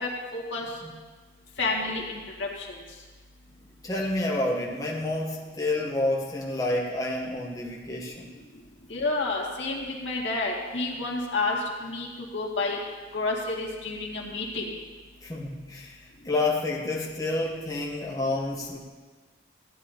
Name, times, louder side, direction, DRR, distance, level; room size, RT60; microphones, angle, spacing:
voice 1, 0.0-0.7 1.6-2.7 8.9-12.1 12.3-12.8 13.1-14.6, left 3 dB, 75° left, -2 dB, 2.1 m, -30 dB
voice 2, 3.8-8.3 15.2-18.8, left 2 dB, 20° left, -3 dB, 0.9 m, -29 dB
15.5 x 10.5 x 2.8 m, 1.3 s
head